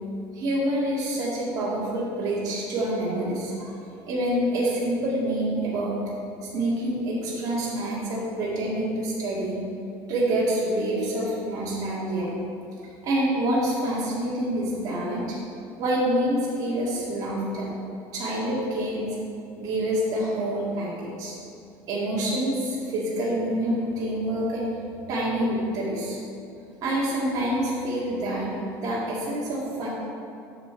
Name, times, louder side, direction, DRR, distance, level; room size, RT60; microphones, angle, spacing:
voice 1, 0.3-3.7 4.1-6.0 6.4-9.6 10.1-12.4 13.0-15.2 15.8-17.7 18.1-19.2 19.6-21.4 21.9-24.7 25.1-26.2 26.8-28.5 28.8-29.9, right 1 dB, 45° right, -6 dB, 1.9 m, -27 dB
7.2 x 6.8 x 4.6 m, 2.6 s
cardioid pair, 135°, 9 cm